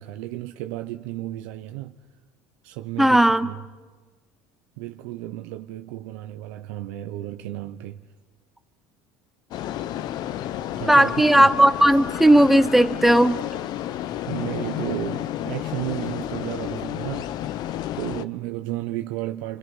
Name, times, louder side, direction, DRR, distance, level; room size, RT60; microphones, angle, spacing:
voice 1, 0.0-2.0 2.6-3.6 4.8-8.0 10.8-11.5 14.3-17.3 17.9-19.6, right 15 dB, 80° right, 0.9 m, -33 dB
voice 2, 3.0-3.5 10.9-13.3, right 1 dB, ahead, 1.1 m, -16 dB
sound 1, 9.5-18.2, left 12 dB, 55° left, 0.9 m, -31 dB
28.0 x 26.0 x 5.5 m
supercardioid pair, 110°, 8 cm